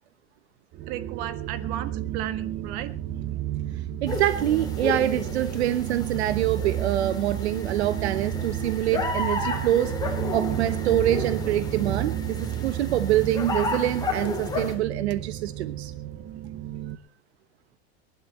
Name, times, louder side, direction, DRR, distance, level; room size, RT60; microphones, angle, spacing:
sound 1, 0.7-16.9, right 11 dB, 35° right, 1.1 m, -31 dB
voice 1, 0.9-2.9, right 12 dB, 55° right, 13 dB, 1.7 m, -35 dB
voice 2, 4.0-9.9 10.3-15.9, right 12 dB, 85° right, 13 dB, 1.1 m, -25 dB
sound 2, 4.1-14.7, left 3 dB, 10° left, 4.1 m, -33 dB
21.0 x 12.0 x 4.3 m, 0.41 s
supercardioid pair, 120°, 32 cm